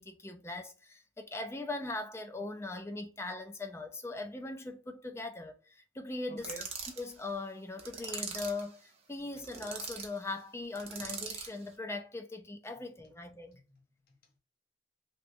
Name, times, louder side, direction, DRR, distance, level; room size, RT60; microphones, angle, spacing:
voice 1, 0.0-6.5 7.0-13.6, left 2 dB, 15° left, 0.3 m, -40 dB
voice 2, 6.3-6.7 13.5-14.4, right 2 dB, 50° left, 0.7 m, -50 dB
sound 1, 6.4-7.0 7.8-8.6 9.3-10.1 10.7-11.6, right 5 dB, 35° right, 0.6 m, -41 dB
3.1 x 2.9 x 2.6 m
head